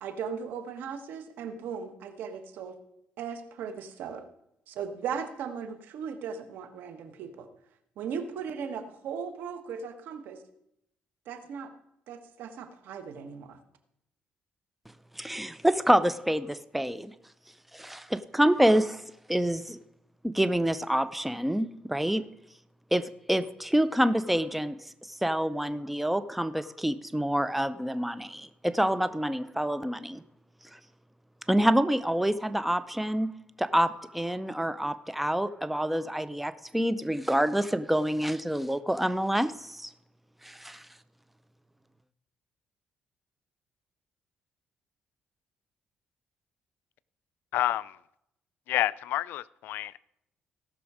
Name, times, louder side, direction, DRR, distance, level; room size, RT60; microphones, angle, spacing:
voice 1, 0.0-2.8 3.2-4.3 4.7-7.5 8.0-10.4 11.2-11.7 12.1-13.6, right 6 dB, 80° right, 8 dB, 1.4 m, -37 dB
voice 2, 15.2-17.1 17.7-19.8 20.2-22.3 22.9-24.9 25.2-30.2 30.7-30.8 31.5-39.9 40.4-40.9, equal, 5° right, 14 dB, 0.5 m, -27 dB
voice 3, 47.5-48.0 48.7-50.0, left 14 dB, 80° left, 19 dB, 0.4 m, -29 dB
17.0 x 6.2 x 4.9 m, 0.78 s
cardioid pair, 100°, 3 cm